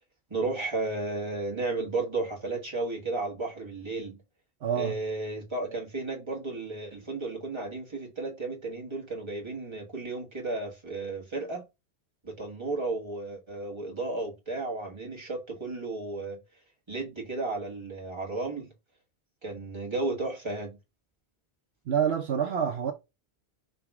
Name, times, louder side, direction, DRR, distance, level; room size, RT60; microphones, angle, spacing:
voice 1, 0.3-4.2 4.7-11.6 12.2-16.4 16.9-18.7 19.4-20.8, right 2 dB, 25° right, 1.7 m, -33 dB
voice 2, 4.6-5.0 21.9-22.9, right 8 dB, 70° right, 1.0 m, -27 dB
5.1 x 2.9 x 3.5 m
omnidirectional pair, 1.1 m